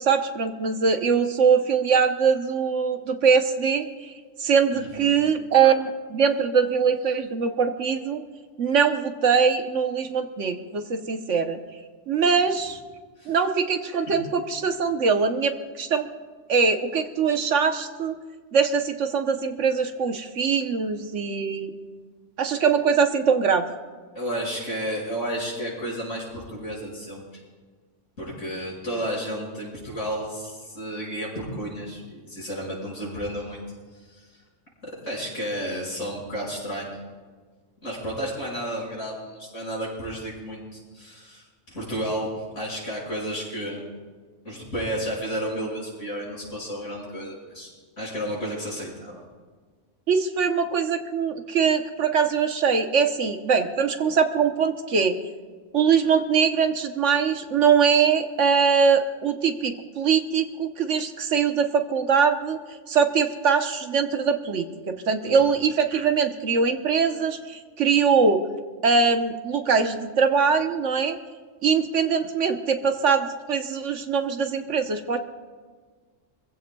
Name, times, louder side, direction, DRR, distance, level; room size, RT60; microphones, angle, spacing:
voice 1, 0.0-4.1 4.4-8.2 8.6-11.6 12.1-12.8 13.3-16.1 16.5-18.2 18.5-21.7 22.4-23.7 50.1-55.2 55.7-62.6 62.9-68.4 68.8-71.2 71.6-75.2, right 6 dB, 70° right, 6 dB, 1.3 m, -22 dB
voice 2, 4.7-5.2 13.2-13.4 24.1-27.4 28.2-33.6 33.9-34.3 34.8-36.9 37.8-43.8 44.4-47.7 48.0-49.2 65.2-65.4, equal, 80° left, -4 dB, 6.0 m, -32 dB
25.5 x 15.5 x 2.3 m, 1.5 s
omnidirectional pair, 1.3 m